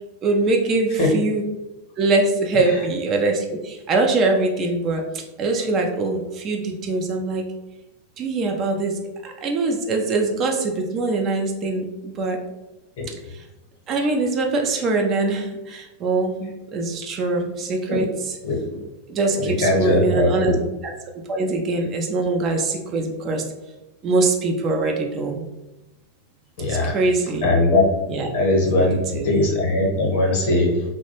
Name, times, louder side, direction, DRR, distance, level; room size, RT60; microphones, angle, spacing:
voice 1, 0.2-1.4 2.0-7.4 8.2-12.4 13.9-18.3 19.1-20.5 21.3-23.4 24.0-25.5 26.7-27.4 28.1-28.3 28.7-28.9 29.1-29.3, right 3 dB, 30° right, 2 dB, 0.3 m, -23 dB
voice 2, 19.4-20.6 26.6-27.0 27.4-27.9 28.3-30.8, left 2 dB, 50° left, -1 dB, 0.8 m, -20 dB
2.2 x 2.1 x 2.9 m, 1.0 s
figure-of-eight pair, 90°, 0 cm